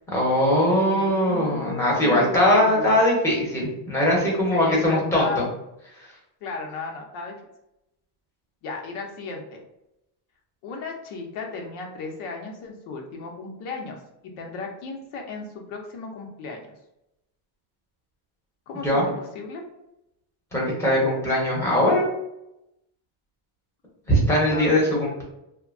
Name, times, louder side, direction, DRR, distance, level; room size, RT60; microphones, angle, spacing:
voice 1, 0.1-5.4 18.7-19.0 20.5-22.1 24.1-25.2, left 1 dB, 5° left, -4 dB, 0.8 m, -21 dB
voice 2, 0.8-3.0 4.5-5.5 6.4-7.3 8.6-9.6 10.6-14.0 14.4-16.6 18.7-19.7 24.5-24.7, left 4 dB, 85° left, 1 dB, 0.8 m, -35 dB
2.7 x 2.2 x 2.5 m, 0.87 s
cardioid pair, 145°, 49 cm